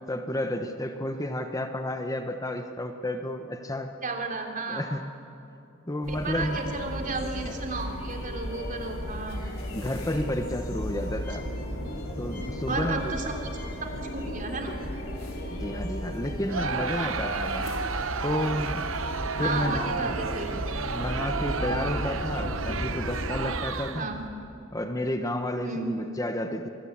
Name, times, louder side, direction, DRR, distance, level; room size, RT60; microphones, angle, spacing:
voice 1, 0.1-3.9 4.7-5.1 5.9-6.6 7.4-7.5 9.7-11.5 12.2-13.1 15.6-17.7 18.2-18.9 19.4-24.1 24.7-26.7, left 1 dB, 15° left, 6 dB, 1.0 m, -31 dB
voice 2, 4.0-4.8 6.1-9.4 12.7-13.3 13.8-14.7 16.6-16.8 19.4-20.6 23.9-24.2 25.6-26.0, right 3 dB, 40° right, 2 dB, 3.3 m, -33 dB
sound 1, 6.0-23.6, equal, 85° left, 5.1 m, -35 dB
sound 2, 6.4-17.7, left 1 dB, 50° left, 4.7 m, -45 dB
Crowd, 16.5-24.2, right 5 dB, 70° right, 1.1 m, -32 dB
26.5 x 21.0 x 8.7 m, 2.7 s
head